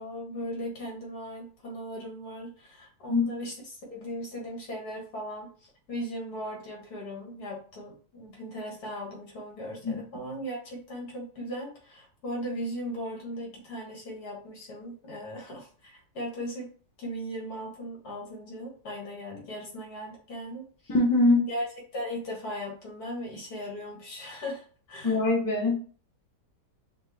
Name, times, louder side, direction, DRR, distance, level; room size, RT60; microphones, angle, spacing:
voice 1, 0.0-16.7 17.0-21.0 21.5-21.7 21.9-25.2, equal, 65° left, -1 dB, 1.9 m, -38 dB
voice 2, 20.9-21.4 25.0-25.8, left 2 dB, 20° left, 0 dB, 0.6 m, -22 dB
5.5 x 2.4 x 3.3 m, 0.41 s
omnidirectional pair, 1.8 m